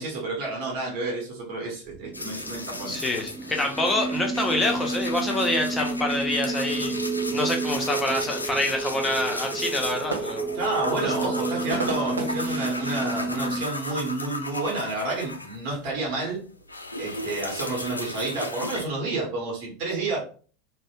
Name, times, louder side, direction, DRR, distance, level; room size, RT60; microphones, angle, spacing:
voice 1, 0.0-3.0 10.5-16.4 17.0-20.2, right 2 dB, 45° right, -1 dB, 1.1 m, -30 dB
sound 1, 1.9-13.7, right 3 dB, 25° right, 0.3 m, -31 dB
sound 2, 2.1-15.9 16.2-18.8, left 2 dB, 85° left, 0.4 m, -35 dB
voice 2, 2.9-7.0 7.3-10.5 10.9-11.5, left 2 dB, 15° left, 2 dB, 0.7 m, -27 dB
sound 3, 9.8-14.4 14.8-14.9 15.2-15.7 16.5-18.1, right 3 dB, 80° right, 0.5 m, -37 dB
3.1 x 2.1 x 2.9 m, 0.40 s
figure-of-eight pair, 80°, 0 cm